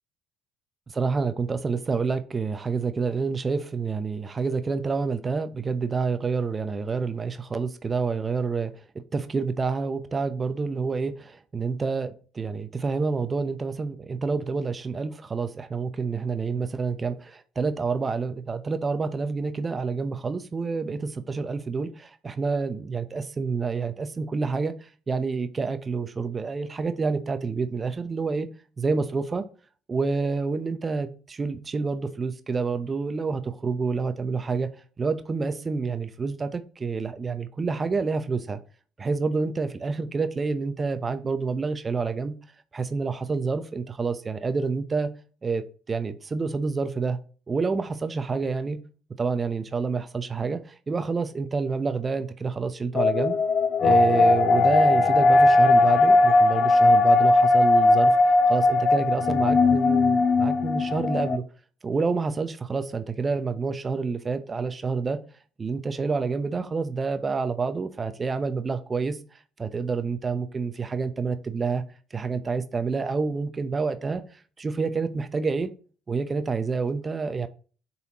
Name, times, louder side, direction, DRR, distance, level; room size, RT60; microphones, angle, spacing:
voice 1, 0.9-8.7 9.1-28.5 28.8-29.5 29.9-34.7 35.0-38.6 39.0-42.3 42.7-45.1 45.4-47.2 47.5-48.8 49.2-53.4 53.8-58.1 58.5-61.4 61.8-65.2 65.6-71.8 72.1-75.7 76.1-77.5, right 4 dB, 30° right, 0.7 m, -28 dB
sound 1, 52.9-61.4, left 3 dB, 50° left, 0.5 m, -19 dB
8.0 x 4.2 x 2.9 m
hypercardioid pair, 55°, 0 cm